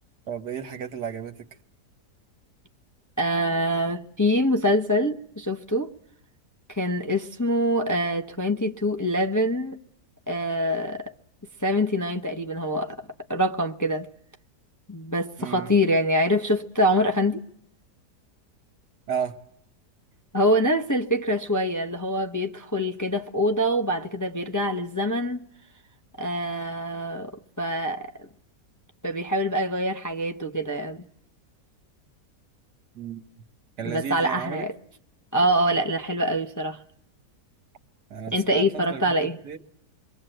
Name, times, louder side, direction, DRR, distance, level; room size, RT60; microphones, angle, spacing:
voice 1, 0.3-1.4 15.4-15.7 19.1-19.4 33.0-33.2 33.8-34.7 38.1-39.1 39.4-39.6, right 7 dB, 75° right, 2.1 m, -33 dB
voice 2, 3.2-5.9 6.7-9.8 10.3-11.1 11.6-13.0 13.3-14.1 14.9-17.4 20.3-25.4 26.2-28.3 29.0-31.0 33.8-34.7 35.3-36.8 38.3-39.4, equal, 15° left, 0.8 m, -25 dB
28.0 x 23.0 x 7.9 m
omnidirectional pair, 1.8 m